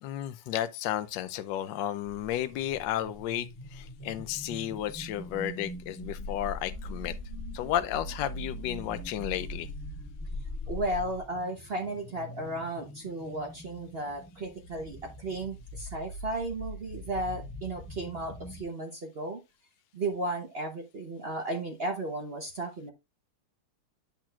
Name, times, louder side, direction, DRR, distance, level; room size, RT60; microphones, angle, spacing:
voice 1, 0.0-7.2 7.5-9.7, left 12 dB, 70° left, 1.1 m, -33 dB
sound 1, 2.3-18.6, left 1 dB, 35° left, 2.0 m, -42 dB
voice 2, 10.7-19.4 19.9-22.9, right 2 dB, 60° right, 0.6 m, -34 dB
8.8 x 5.9 x 2.3 m
omnidirectional pair, 2.4 m